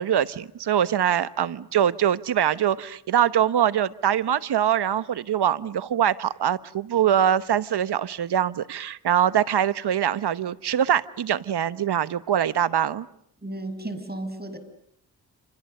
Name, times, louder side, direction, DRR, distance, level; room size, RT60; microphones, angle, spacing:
voice 1, 0.0-13.1, right 9 dB, 80° right, 1.2 m, -23 dB
voice 2, 13.4-14.6, right 1 dB, 25° right, 6.1 m, -33 dB
29.0 x 29.0 x 6.7 m
cardioid pair, 60°, 40 cm